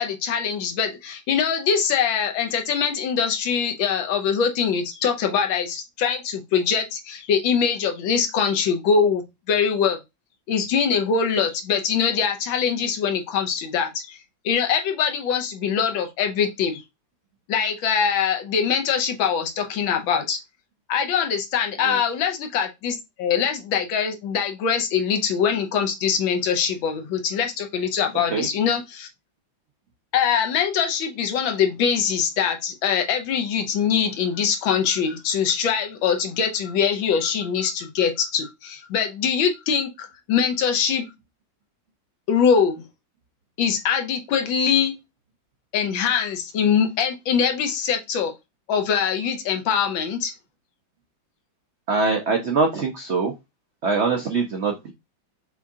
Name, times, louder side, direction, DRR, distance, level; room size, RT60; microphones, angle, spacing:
voice 1, 0.0-10.0 10.5-14.2 14.4-16.8 17.5-20.4 20.9-29.1 30.1-41.1 42.3-42.8 43.6-44.9 45.7-48.3 48.7-50.3, left 7 dB, 85° left, 1.6 m, -23 dB
voice 2, 51.9-53.3 53.8-54.9, right 4 dB, 85° right, 0.6 m, -23 dB
6.1 x 2.7 x 2.4 m
omnidirectional pair, 2.1 m